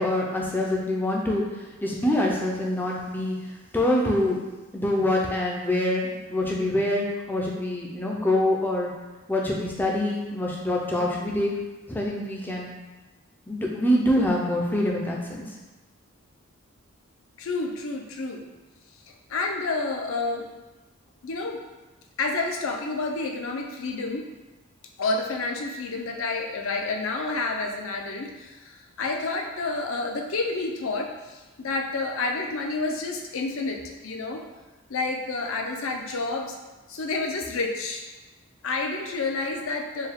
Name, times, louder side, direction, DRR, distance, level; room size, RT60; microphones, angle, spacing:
voice 1, 0.0-1.4 1.8-3.4 3.7-4.4 4.7-8.9 9.3-11.5 11.9-12.7 13.5-15.4, left 1 dB, 10° left, -2 dB, 0.4 m, -25 dB
voice 2, 17.4-18.4 19.1-20.5 21.2-21.6 22.2-24.3 25.0-34.4 34.9-36.6 36.9-38.1 38.6-40.1, left 3 dB, 65° left, 2 dB, 0.5 m, -29 dB
4.5 x 2.3 x 3.5 m, 1.2 s
head